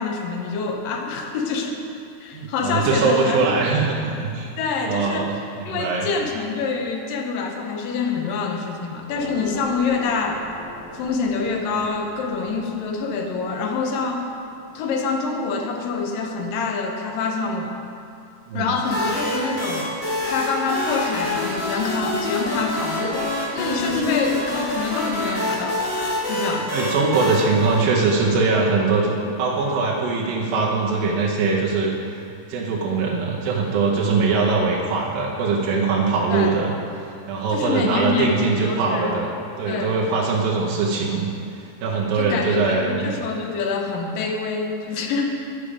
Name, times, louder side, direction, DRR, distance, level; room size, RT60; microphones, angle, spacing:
voice 1, 0.0-1.8 2.2-3.7 4.6-5.3 5.7-10.4 10.9-14.3 14.7-17.7 18.5-19.9 20.3-25.8 26.3-26.7 36.3-36.6 37.5-39.2 39.7-40.0 42.1-45.4, left 4 dB, 80° left, 3 dB, 2.4 m, -26 dB
voice 2, 2.3-4.5 4.8-5.4 5.7-6.1 18.5-18.7 26.7-31.9 32.5-36.7 37.3-39.3 39.6-41.3 41.8-43.1, right 4 dB, 85° right, -3 dB, 2.7 m, -21 dB
sound 1, 9.1-15.9, left 1 dB, 10° left, 2.0 m, -41 dB
sound 2, 18.8-28.5, left 1 dB, 60° left, 0.6 m, -26 dB
9.9 x 6.9 x 5.0 m, 2.5 s
omnidirectional pair, 3.9 m